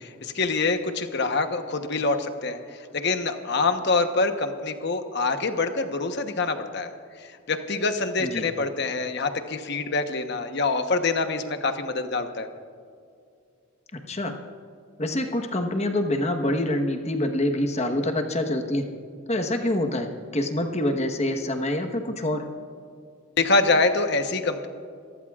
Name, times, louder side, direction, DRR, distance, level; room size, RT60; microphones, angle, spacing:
voice 1, 0.0-2.6 2.9-6.9 7.5-12.5 23.4-24.7, left 3 dB, 55° left, 7 dB, 1.0 m, -25 dB
voice 2, 13.9-14.3 15.0-18.8 19.3-22.4, left 1 dB, 30° left, 5 dB, 1.2 m, -26 dB
28.0 x 15.0 x 2.4 m, 2.3 s
head